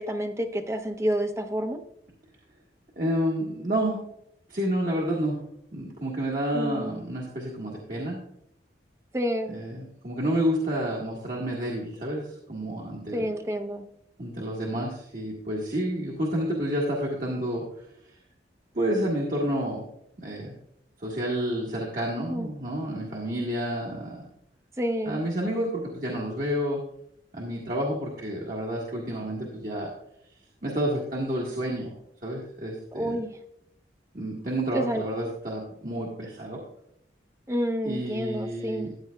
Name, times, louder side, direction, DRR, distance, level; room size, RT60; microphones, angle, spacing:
voice 1, 0.0-1.8 6.5-7.0 9.1-9.6 13.1-13.9 22.3-22.5 24.8-25.2 32.9-33.3 34.7-35.0 37.5-38.9, equal, 15° right, 5 dB, 0.7 m, -29 dB
voice 2, 3.0-4.0 4.5-5.4 5.7-8.2 9.5-13.3 14.2-17.8 18.7-19.8 20.2-20.5 21.0-24.3 25.0-26.8 27.3-29.9 30.6-31.9 32.2-33.2 34.1-36.6 37.8-38.9, equal, 45° right, -3 dB, 1.6 m, -29 dB
13.5 x 9.3 x 2.3 m, 0.74 s
head